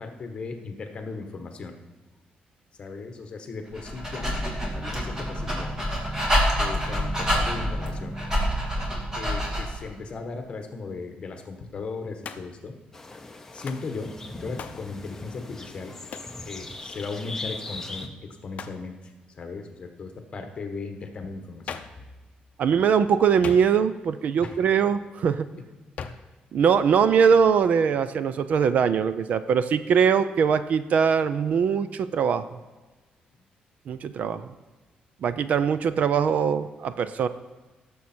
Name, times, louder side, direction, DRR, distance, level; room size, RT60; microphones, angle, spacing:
voice 1, 0.0-1.7 2.8-4.4 4.8-5.7 6.6-8.2 9.2-12.7 13.5-15.9 16.4-18.1 18.4-18.9 19.4-21.8 24.4-24.6, left 4 dB, 35° left, 5 dB, 1.3 m, -37 dB
Dog, 3.7-9.8, equal, 20° right, 2.4 m, -27 dB
Hands, 12.2-12.7 13.7-13.9 14.6-14.9 16.1-16.4 18.5-18.9 21.7-22.0 23.4-24.0 26.0-26.3, left 6 dB, 50° left, 0.7 m, -38 dB
sound 1, 12.9-18.1, left 2 dB, 15° left, 0.8 m, -39 dB
voice 2, 22.6-25.5 26.5-32.4 33.9-34.5 35.2-37.3, right 7 dB, 55° right, 13 dB, 0.5 m, -22 dB
17.5 x 7.1 x 4.4 m, 1.2 s
cardioid pair, 170°, 3 cm